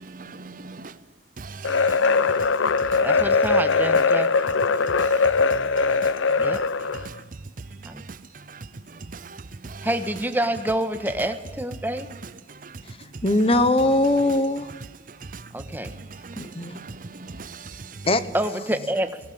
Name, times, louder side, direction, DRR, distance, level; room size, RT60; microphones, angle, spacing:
voice 1, 0.0-0.9 1.4-2.0 2.3-2.4 2.8-3.1 5.0-5.2 6.0-6.1 6.4-6.6 7.0-7.1 8.5-8.7 9.1-9.4 9.6-9.9 12.6-12.8 15.3-15.4 16.2-16.9, right 4 dB, 45° right, 15 dB, 0.6 m, -40 dB
sound 1, 1.6-7.1, left 4 dB, 85° left, 0.6 m, -21 dB
voice 2, 3.0-4.3 6.4-6.6 7.8-8.0 9.8-12.1 15.5-15.9 18.3-19.2, right 1 dB, 10° right, 8 dB, 1.3 m, -27 dB
voice 3, 13.2-14.7 16.4-16.8 18.1-18.2, left 2 dB, 30° left, 12 dB, 1.0 m, -20 dB
19.0 x 18.5 x 8.7 m, 1.2 s
head